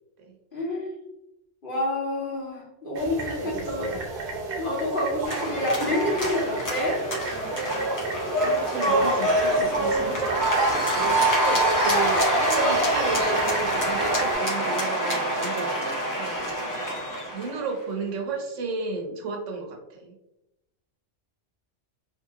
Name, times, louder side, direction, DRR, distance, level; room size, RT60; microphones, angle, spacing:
voice 1, 0.5-0.9 1.6-3.9 4.6-7.0, left 1 dB, 50° left, -3 dB, 1.0 m, -28 dB
sound 1, 2.9-14.3, right 3 dB, 55° right, 0.8 m, -33 dB
voice 2, 3.3-4.0 8.4-12.3 12.6-16.5 17.3-20.1, right 4 dB, 80° right, 2 dB, 1.0 m, -33 dB
sound 2, 5.2-17.6, right 1 dB, 25° left, 0.4 m, -25 dB
3.2 x 2.8 x 2.4 m, 0.89 s
omnidirectional pair, 1.3 m